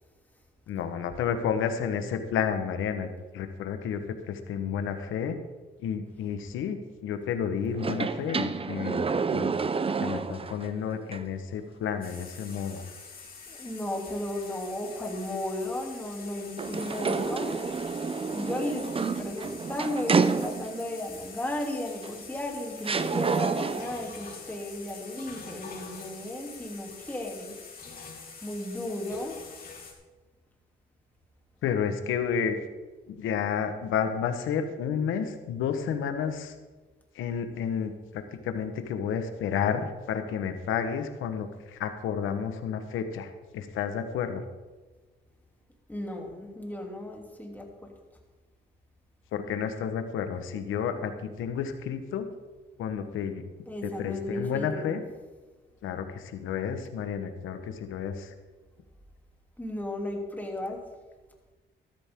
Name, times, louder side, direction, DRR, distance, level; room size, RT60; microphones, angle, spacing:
voice 1, 0.7-4.0 4.3-5.4 5.8-9.0 9.3-9.6 10.0-12.9 31.6-32.6 33.1-36.5 37.1-44.4 49.3-52.3 52.8-53.4 53.8-55.0 55.8-58.3, left 7 dB, 85° left, 8 dB, 1.4 m, -31 dB
sound 1, 7.8-10.7 11.1-11.2 16.6-20.9 22.0-22.1 22.8-24.0, right 5 dB, 30° right, 0.7 m, -29 dB
sound 2, 12.0-29.9, left 5 dB, 45° left, 3.6 m, -45 dB
voice 2, 13.5-17.5 18.3-27.5 28.4-29.4 45.9-47.9 53.6-55.0 59.6-60.8, left 1 dB, 10° left, 0 dB, 3.2 m, -34 dB
14.0 x 13.0 x 3.8 m, 1.3 s
cardioid pair, 90°, 20 cm